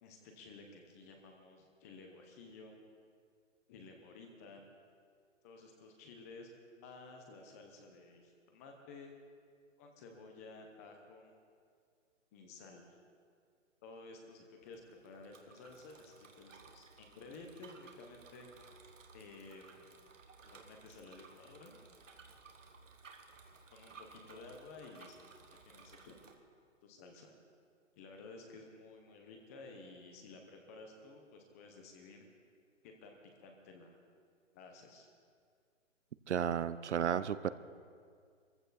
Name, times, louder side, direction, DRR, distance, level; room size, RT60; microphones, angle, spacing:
voice 1, 0.0-2.8 3.7-4.6 5.4-9.1 9.8-11.3 12.3-13.0 13.8-18.5 19.1-20.0 20.4-21.8 23.7-25.2 25.6-26.3 26.8-27.3 28.0-32.3 32.8-34.0 34.5-35.1, left 3 dB, 15° left, 3 dB, 0.8 m, -54 dB
Bicycle, 14.6-26.3, right 4 dB, 90° right, 2.1 m, -58 dB
voice 2, 36.3-37.5, right 8 dB, 65° right, 14 dB, 0.7 m, -33 dB
23.5 x 15.0 x 4.1 m, 2.1 s
hypercardioid pair, 165°, 37 cm